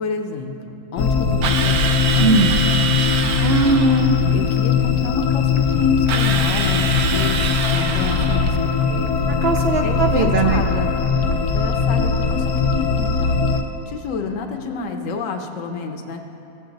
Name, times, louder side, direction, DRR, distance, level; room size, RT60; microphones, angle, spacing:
voice 1, 0.0-2.6 2.9-3.0 4.3-7.4 7.7-9.3 9.8-10.9 11.5-13.4 13.9-16.2, left 5 dB, 65° left, 4 dB, 1.1 m, -29 dB
sound 1, 1.0-13.6, left 6 dB, 85° left, 1.2 m, -20 dB
Drill, 1.4-4.1 6.1-8.6, right 6 dB, 90° right, 1.1 m, -25 dB
voice 2, 2.2-2.6 3.4-4.2 9.4-10.6, right 4 dB, 60° right, 3 dB, 0.7 m, -19 dB
16.0 x 7.6 x 3.9 m, 2.9 s
omnidirectional pair, 1.6 m